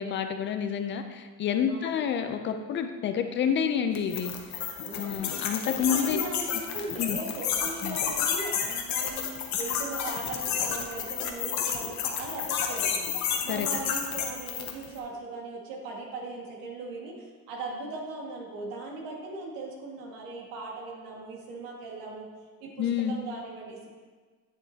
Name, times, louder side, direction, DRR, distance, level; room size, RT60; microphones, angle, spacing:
voice 1, 0.0-4.3 4.9-6.2 7.0-7.2 7.8-8.0 13.5-13.7 22.8-23.2, left 8 dB, 35° left, 7 dB, 0.4 m, -29 dB
voice 2, 1.7-2.0 4.7-5.3 5.8-13.1 13.4-17.2 17.5-22.3 22.6-23.9, right 3 dB, 85° right, -1 dB, 1.9 m, -39 dB
sound 1, 3.9-14.9, left 8 dB, 55° left, 0.9 m, -31 dB
9.2 x 7.4 x 2.8 m, 1.4 s
cardioid pair, 160°, 34 cm